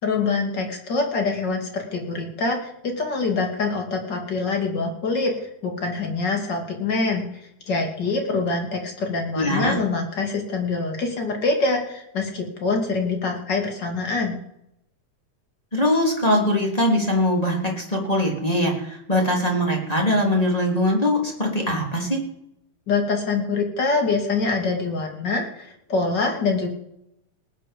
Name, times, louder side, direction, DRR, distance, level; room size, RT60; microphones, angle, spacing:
voice 1, 0.0-7.3 7.7-14.4 22.9-26.7, left 3 dB, 35° left, 2 dB, 2.9 m, -25 dB
voice 2, 9.3-9.7 15.7-22.2, left 1 dB, 15° left, -1 dB, 2.9 m, -22 dB
19.0 x 10.0 x 5.3 m, 0.78 s
omnidirectional pair, 3.3 m